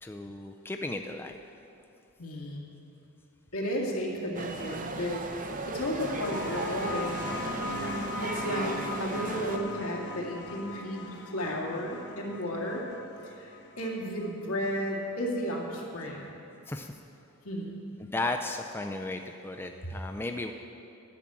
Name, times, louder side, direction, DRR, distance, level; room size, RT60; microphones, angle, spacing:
voice 1, 0.0-1.4 16.7-16.9 18.0-20.5, left 2 dB, 10° left, 5 dB, 0.3 m, -35 dB
voice 2, 2.2-2.7 3.5-12.8 13.2-16.3 17.4-17.8, equal, 80° left, -2 dB, 2.0 m, -34 dB
sound 1, 4.3-9.6, right 3 dB, 35° right, 0.7 m, -36 dB
sound 2, 5.8-15.0 16.2-16.3, left 3 dB, 55° left, 0.9 m, -40 dB
10.5 x 6.0 x 8.6 m, 2.7 s
head